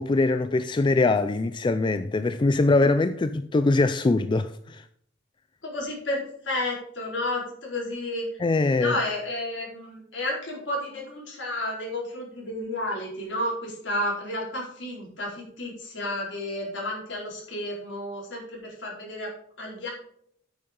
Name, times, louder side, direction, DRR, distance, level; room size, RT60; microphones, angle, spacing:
voice 1, 0.0-4.8 8.4-8.9, left 3 dB, 25° left, 0.3 m, -22 dB
voice 2, 5.6-8.3 8.8-19.3 19.6-19.9, left 1 dB, 70° left, 4.5 m, -31 dB
9.0 x 6.8 x 5.3 m
head